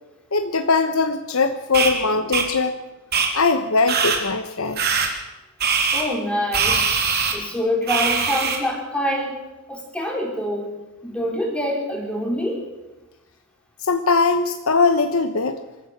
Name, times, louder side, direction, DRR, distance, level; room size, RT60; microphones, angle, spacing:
voice 1, 0.3-2.8 3.3-4.8 13.8-15.6, left 4 dB, 70° left, 8 dB, 1.1 m, -20 dB
sound 1, 1.7-1.9 2.3-2.5 3.1-3.3 3.9-4.2 4.8-5.1 5.6-6.0 6.5-7.3 7.9-8.6, right 5 dB, 50° right, 3.3 m, -21 dB
voice 2, 5.9-6.9 7.3-9.4 9.7-10.7 11.0-12.6, left 1 dB, 5° left, 0 dB, 4.2 m, -25 dB
25.0 x 14.5 x 7.3 m, 1.1 s
head